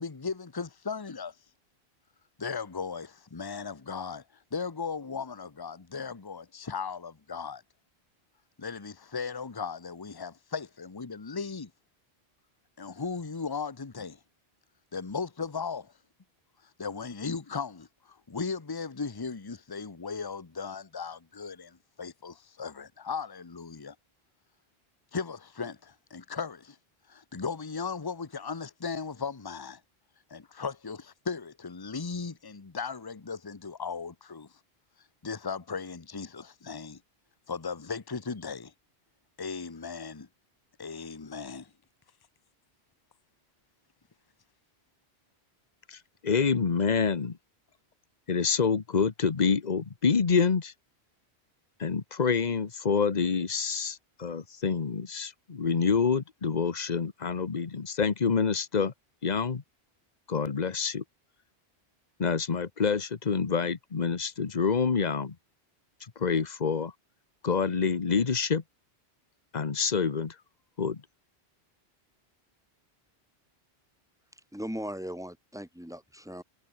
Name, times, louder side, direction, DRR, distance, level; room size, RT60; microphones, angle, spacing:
voice 1, 0.0-1.3 2.4-4.2 4.5-7.6 8.6-11.7 12.8-14.2 14.9-15.9 16.8-23.9 25.1-26.8 27.1-29.8 30.3-34.5 35.2-37.0 37.5-38.7 39.4-40.3 40.8-41.7, left 5 dB, 20° left, 1.0 m, -37 dB
voice 2, 45.9-47.4 48.3-50.7 51.8-58.9 59.2-59.6 60.3-61.0 62.2-65.3 66.2-66.9 67.4-68.6 69.5-70.3 70.8-71.0, left 5 dB, 40° left, 1.2 m, -27 dB
voice 3, 74.5-76.4, equal, 5° right, 6.0 m, -38 dB
omnidirectional pair, 1.1 m